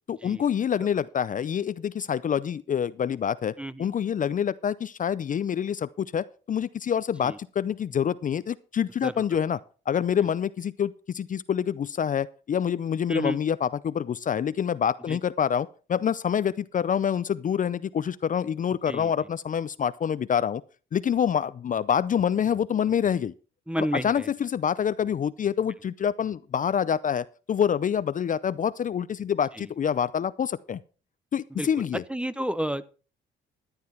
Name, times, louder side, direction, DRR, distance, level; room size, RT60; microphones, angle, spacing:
voice 1, 0.1-9.6 9.9-20.6 20.9-23.3 23.8-30.8 31.3-32.0, left 8 dB, 40° left, 0.5 m, -26 dB
voice 2, 23.7-24.3 29.5-29.7 31.5-31.7 32.1-32.9, equal, 5° right, 0.7 m, -31 dB
13.0 x 9.8 x 4.5 m
cardioid pair, 90°, 20 cm